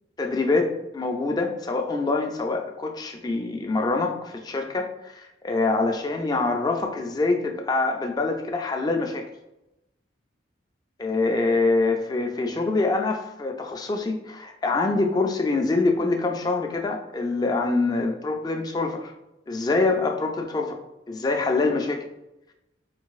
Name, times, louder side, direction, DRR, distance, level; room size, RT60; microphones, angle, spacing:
voice 1, 0.2-9.2 11.0-19.1 19.5-20.8 21.1-22.0, left 3 dB, 20° left, 4 dB, 0.3 m, -25 dB
3.9 x 2.6 x 2.3 m, 0.92 s
head